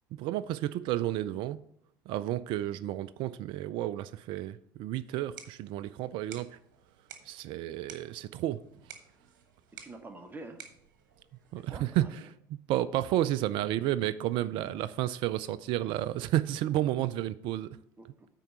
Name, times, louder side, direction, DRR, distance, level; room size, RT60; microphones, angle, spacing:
voice 1, 0.2-1.6 2.1-6.6 7.3-8.6 11.5-12.1 12.5-17.8, right 13 dB, 55° right, 0.4 m, -31 dB
sound 1, 5.1-12.0, right 8 dB, 70° right, 1.2 m, -53 dB
voice 2, 9.7-10.6 11.5-12.3 13.6-13.7 14.7-14.9 18.0-18.3, right 2 dB, 20° right, 1.1 m, -47 dB
9.0 x 4.6 x 6.6 m
hypercardioid pair, 70°, 10 cm